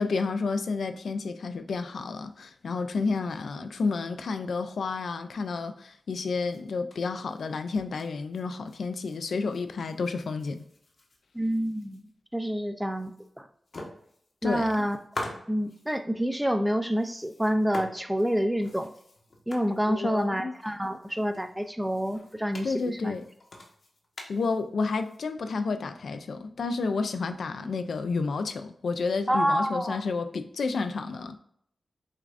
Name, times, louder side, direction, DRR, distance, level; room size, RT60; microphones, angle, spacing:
voice 1, 0.0-10.6 14.4-14.7 19.9-20.5 22.6-23.3 24.3-31.4, left 4 dB, 85° left, 8 dB, 0.3 m, -30 dB
sound 1, 6.5-9.2 9.4-12.1 12.5-12.6 12.9-13.4 13.7-16.0 17.0-25.2, left 1 dB, 55° left, 0.8 m, -45 dB
voice 2, 11.3-12.0 12.3-13.1 14.4-15.0 15.5-18.9 19.5-23.2 29.3-30.0, equal, 5° right, 8 dB, 0.3 m, -28 dB
6.3 x 2.5 x 2.4 m, 0.68 s
wide cardioid pair, 100°, 0 cm